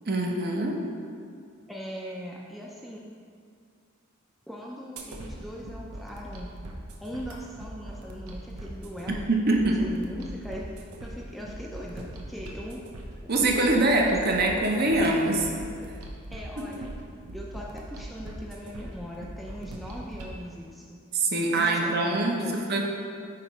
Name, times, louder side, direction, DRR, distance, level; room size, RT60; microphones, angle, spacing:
voice 1, 0.1-0.8 9.1-9.8 13.3-15.5 16.6-16.7 21.1-22.9, right 2 dB, 45° right, 0 dB, 0.7 m, -24 dB
voice 2, 1.7-3.0 4.5-6.6 7.0-9.3 9.7-12.8 13.2-14.0 14.4-15.1 16.3-16.9 17.3-21.0 21.5-22.6, equal, ahead, -4 dB, 0.4 m, -40 dB
slugs on the train, 5.0-20.4, right 1 dB, 90° right, 0.8 m, -41 dB
8.4 x 3.0 x 4.8 m, 2.2 s
head